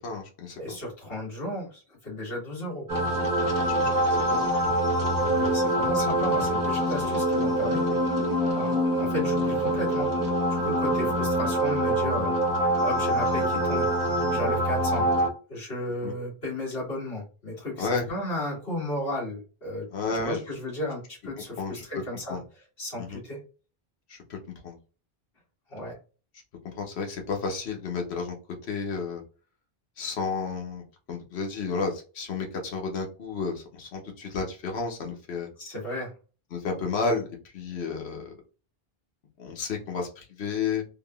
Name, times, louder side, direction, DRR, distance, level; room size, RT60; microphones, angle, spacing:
voice 1, 0.0-0.8 3.6-4.6 6.2-6.5 7.9-8.0 8.3-8.4 14.3-14.4 16.0-16.1 17.8-18.1 19.9-20.4 21.6-21.8 22.3-22.4 23.0-23.2 24.1-24.4 24.6-24.7 26.7-28.4 28.6-29.2 30.0-35.5 36.5-38.3 39.4-40.8, left 4 dB, 90° left, 2 dB, 1.1 m, -32 dB
voice 2, 0.6-2.9 5.2-7.8 8.6-10.1 10.5-13.9 14.3-15.1 15.5-19.9 20.1-22.4 22.8-23.4 25.7-26.0 35.6-36.1, left 1 dB, 65° left, -4 dB, 1.8 m, -34 dB
sound 1, 2.9-15.3, right 1 dB, 20° right, 0.8 m, -25 dB
3.4 x 2.8 x 2.3 m, 0.35 s
omnidirectional pair, 1.1 m